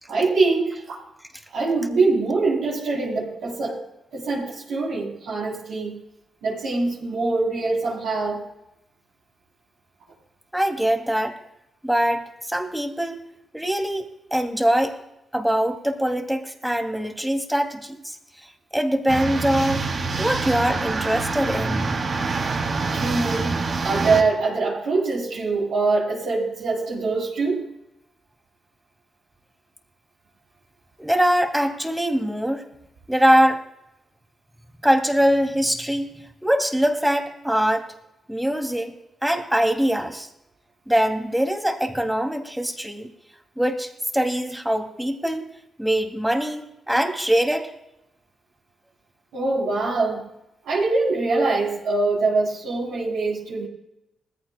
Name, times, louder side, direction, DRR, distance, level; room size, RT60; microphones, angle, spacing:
voice 1, 0.1-1.0 1.5-3.8 4.1-6.0 6.4-8.4 22.9-23.5 23.8-27.6 49.3-50.2 50.7-53.7, right 3 dB, 80° right, -8 dB, 3.5 m, -23 dB
voice 2, 10.5-11.4 11.8-13.2 13.5-15.0 15.3-18.2 18.7-19.8 20.2-21.9 31.0-32.6 33.1-33.6 34.8-36.1 36.4-37.9 38.3-39.0 39.2-40.3 40.9-43.1 43.6-45.5 45.8-47.7, equal, 5° right, 4 dB, 2.6 m, -22 dB
sound 1, 19.1-24.2, right 4 dB, 55° right, 2.7 m, -26 dB
20.0 x 15.0 x 2.2 m, 0.88 s
supercardioid pair, 40°, 0 cm